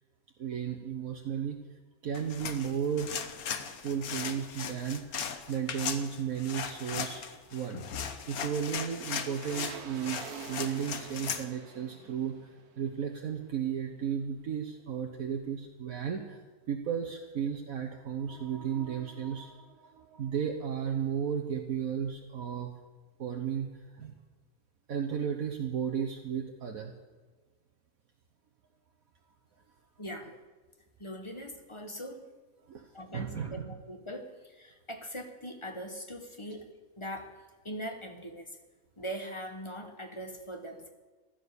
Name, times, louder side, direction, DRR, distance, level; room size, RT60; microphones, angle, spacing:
voice 1, 0.4-1.6 2.0-3.1 3.8-16.4 16.7-22.7 23.2-24.2 24.9-26.9 32.7-32.9 33.1-33.6, right 8 dB, 70° right, 2 dB, 1.5 m, -34 dB
sound 1, 2.1-11.5, left 7 dB, 75° left, 1.5 m, -38 dB
sound 2, 7.2-14.0 14.3-14.4, right 6 dB, 90° right, 1.7 m, -49 dB
voice 2, 30.0-30.3 31.0-32.3 32.9-37.3 37.6-38.6 39.0-40.9, equal, 20° left, 5 dB, 1.5 m, -41 dB
15.5 x 12.5 x 6.9 m, 1.3 s
omnidirectional pair, 1.6 m